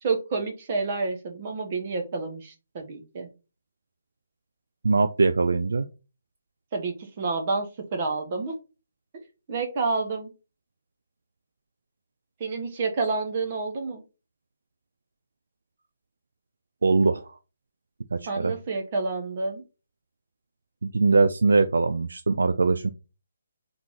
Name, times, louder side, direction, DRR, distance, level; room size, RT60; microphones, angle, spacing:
voice 1, 0.0-3.3 6.7-8.6 9.5-10.3 12.4-14.0 18.3-19.6, right 3 dB, 40° right, 4 dB, 1.0 m, -29 dB
voice 2, 4.8-5.9 16.8-17.3 18.1-18.6 20.8-22.9, right 3 dB, 75° right, 8 dB, 0.3 m, -22 dB
3.6 x 3.1 x 3.7 m, 0.31 s
figure-of-eight pair, 150°, 0 cm